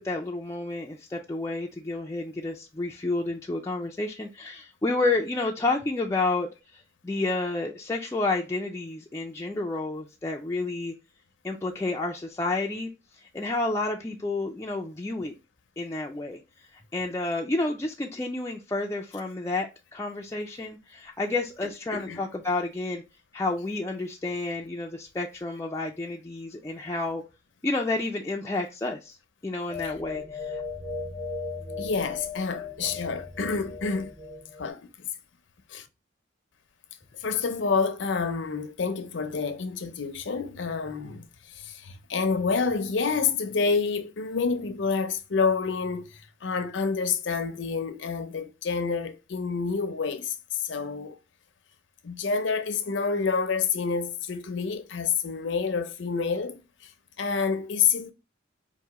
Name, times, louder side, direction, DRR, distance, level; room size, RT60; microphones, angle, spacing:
voice 1, 0.0-6.5 6.7-10.9 11.4-15.3 15.8-16.4 16.7-23.0 23.3-27.2 27.6-29.2 29.4-30.6, left 2 dB, 15° left, 0.4 m, -30 dB
voice 2, 21.9-22.3 29.8-29.9 31.8-34.1 34.6-35.1 35.7-35.8 37.2-41.3 41.6-46.1 46.4-50.4 50.6-51.2 52.0-56.6 57.2-58.1, left 5 dB, 70° left, 0.6 m, -28 dB
sound 1, 29.7-34.7, left 4 dB, 60° right, 2.4 m, -37 dB
4.7 x 2.6 x 2.9 m
head